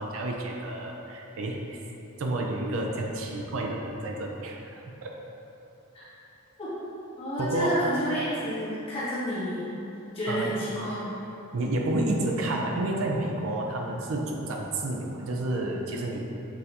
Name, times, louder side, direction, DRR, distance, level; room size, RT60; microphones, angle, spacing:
voice 1, 0.0-1.8 2.2-5.1 7.4-7.8 10.3-10.6 11.5-16.2, right 2 dB, 65° right, 0 dB, 0.4 m, -30 dB
voice 2, 7.2-9.7 10.1-11.1, equal, 25° left, -10 dB, 1.2 m, -30 dB
6.1 x 2.6 x 2.8 m, 2.9 s
head